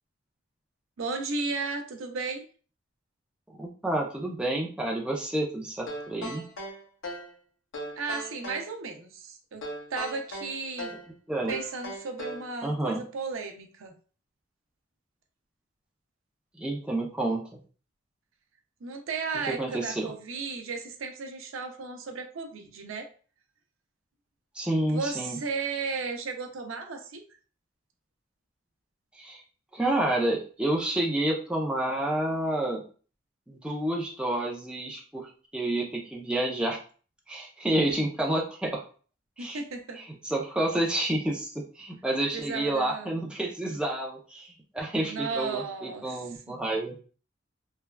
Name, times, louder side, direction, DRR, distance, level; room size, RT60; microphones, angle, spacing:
voice 1, 1.0-2.4 8.0-9.6 9.9-10.9 11.5-13.9 18.8-23.1 24.9-27.2 39.4-40.0 42.3-43.1 45.1-46.2 46.5-46.6, right 4 dB, 85° right, 5 dB, 0.5 m, -34 dB
voice 2, 3.5-6.4 11.3-11.5 12.6-13.0 16.6-17.6 19.5-20.1 24.5-25.4 29.1-29.4 29.7-32.8 33.5-36.8 37.3-38.8 39.4-39.6 40.0-46.9, right 1 dB, 5° right, -2 dB, 0.4 m, -29 dB
sound 1, 5.9-7.3 7.7-8.7 9.6-11.1 11.5-12.5, equal, 70° left, 0.7 m, -38 dB
3.3 x 2.3 x 2.2 m, 0.39 s
head